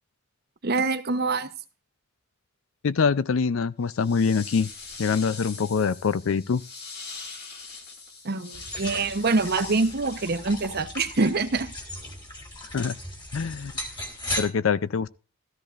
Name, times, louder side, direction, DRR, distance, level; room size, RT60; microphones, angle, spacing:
voice 1, 0.6-1.5 8.2-11.7, right 3 dB, 50° right, 0.9 m, -25 dB
voice 2, 2.8-4.7 5.0-6.6 12.7-13.0 13.3-13.7 14.4-15.1, left 5 dB, 70° left, 0.5 m, -24 dB
sound 1, 3.9-11.1, left 4 dB, 55° left, 2.2 m, -42 dB
sound 2, 8.5-14.4, left 1 dB, 25° left, 2.8 m, -36 dB
13.5 x 13.5 x 2.5 m
head